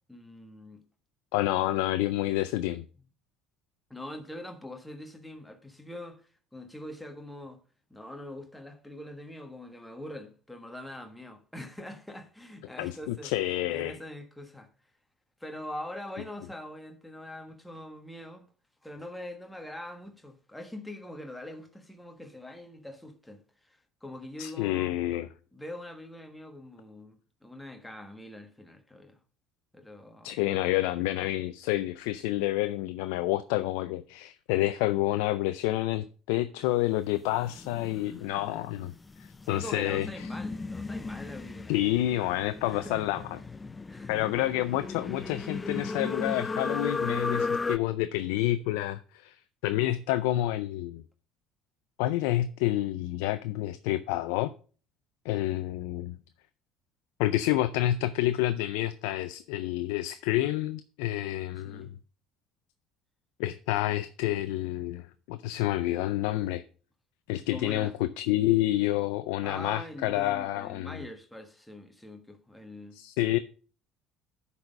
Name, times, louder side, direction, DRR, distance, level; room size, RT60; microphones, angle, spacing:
voice 1, 0.1-0.8 3.9-7.6 7.9-13.3 13.7-14.7 15.4-18.5 18.8-24.9 25.5-29.2 29.7-30.4 31.1-31.3 39.4-41.8 42.6-43.3 43.9-44.5 44.7-44.8 61.6-61.9 67.5-68.0 69.4-73.0, left 1 dB, 5° left, 1.4 m, -43 dB
voice 2, 1.3-2.8 12.8-14.0 24.4-25.3 30.2-38.9 39.5-40.3 41.7-43.4 44.1-49.4 49.6-51.0 52.0-54.5 55.3-56.2 57.2-61.9 63.4-66.6 67.3-71.0 72.9-73.4, left 15 dB, 85° left, 0.4 m, -29 dB
sound 1, 37.3-47.8, left 4 dB, 20° left, 0.4 m, -35 dB
10.5 x 4.1 x 5.2 m
supercardioid pair, 90°, 0 cm